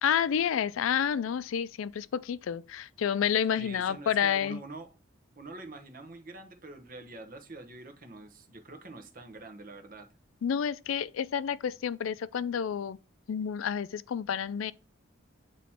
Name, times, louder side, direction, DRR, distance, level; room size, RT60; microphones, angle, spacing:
voice 1, 0.0-4.6 10.4-13.0 13.3-14.7, left 8 dB, 80° left, 0.4 m, -29 dB
voice 2, 3.6-5.0 5.4-10.1, right 2 dB, 45° right, 1.0 m, -46 dB
8.7 x 3.1 x 4.3 m
head